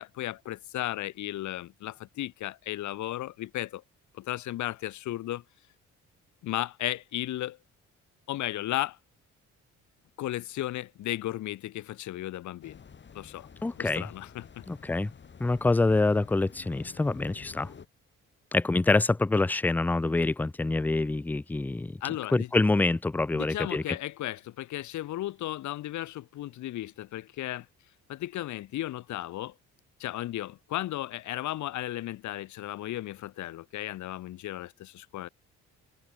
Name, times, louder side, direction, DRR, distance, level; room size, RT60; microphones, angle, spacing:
voice 1, 0.0-3.8 4.1-5.4 6.4-7.6 8.3-9.0 10.2-12.8 13.1-13.5 13.8-14.6 22.0-22.5 23.3-27.7 28.1-29.5 30.0-35.3, left 14 dB, 70° left, 0.9 m, -35 dB
sound 1, 12.6-17.9, left 6 dB, 40° left, 1.9 m, -49 dB
voice 2, 13.6-14.0 14.7-15.1 15.4-17.7 18.5-22.0 22.3-23.8, left 2 dB, 5° left, 0.3 m, -26 dB
open air
cardioid pair, 90°, 30 cm